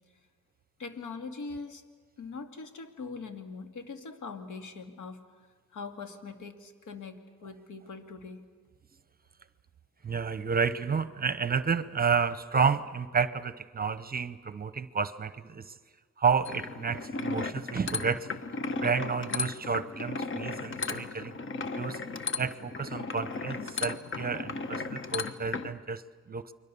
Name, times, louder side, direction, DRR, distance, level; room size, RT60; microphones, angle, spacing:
voice 1, 0.8-1.8 2.2-5.2 5.7-8.4, left 4 dB, 75° left, 6 dB, 2.4 m, -42 dB
voice 2, 10.0-15.7 16.2-18.3 18.7-21.4 21.7-22.0 22.4-26.5, right 5 dB, 30° right, 14 dB, 0.9 m, -30 dB
sound 1, 16.4-25.7, left 4 dB, 40° left, 1.3 m, -35 dB
29.5 x 22.5 x 7.0 m, 1.5 s
cardioid pair, 90°, 30 cm